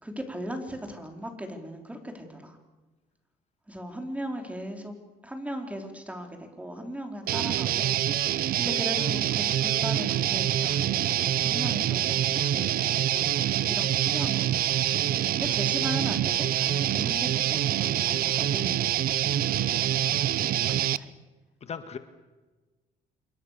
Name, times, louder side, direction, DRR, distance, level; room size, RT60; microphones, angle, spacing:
voice 1, 0.0-2.6 3.7-5.0 5.2-8.0 8.2-13.3 13.7-20.2 21.0-21.1, equal, 10° right, 4 dB, 4.7 m, -38 dB
Guitar, 7.3-21.0, right 12 dB, 60° right, 0.8 m, -26 dB
voice 2, 21.6-22.0, left 6 dB, 40° left, 9 dB, 1.8 m, -38 dB
28.0 x 22.5 x 6.9 m, 1.2 s
cardioid pair, 110°, 17 cm